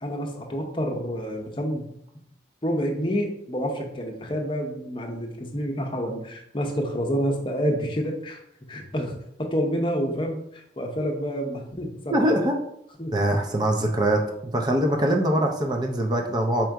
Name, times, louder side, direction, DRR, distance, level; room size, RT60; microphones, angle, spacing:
voice 1, 0.0-1.9 2.6-8.4 8.7-9.1 9.4-12.3 13.0-13.1, equal, 30° left, 2 dB, 0.7 m, -28 dB
voice 2, 12.1-12.6 13.1-16.7, right 1 dB, 25° right, 3 dB, 0.5 m, -23 dB
4.4 x 2.5 x 4.5 m, 0.75 s
head